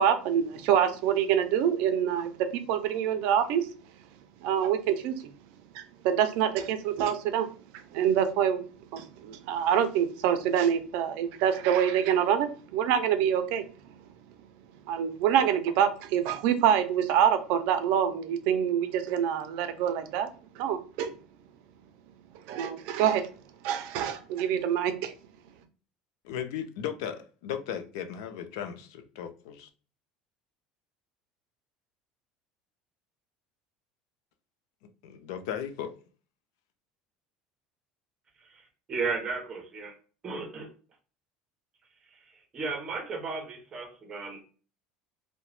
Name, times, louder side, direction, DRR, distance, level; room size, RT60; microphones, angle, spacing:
voice 1, 0.0-3.7 4.4-5.3 5.7-7.5 7.9-8.6 8.9-13.7 14.9-20.3 20.6-21.1 22.5-23.3 23.6-25.1, right 9 dB, 70° right, 0.4 m, -26 dB
voice 2, 26.2-29.7 35.0-35.9, left 9 dB, 90° left, 0.4 m, -36 dB
voice 3, 38.9-39.9 40.2-40.7 42.5-44.6, right 4 dB, 30° right, 0.7 m, -34 dB
2.8 x 2.1 x 3.0 m
cardioid pair, 145°, 2 cm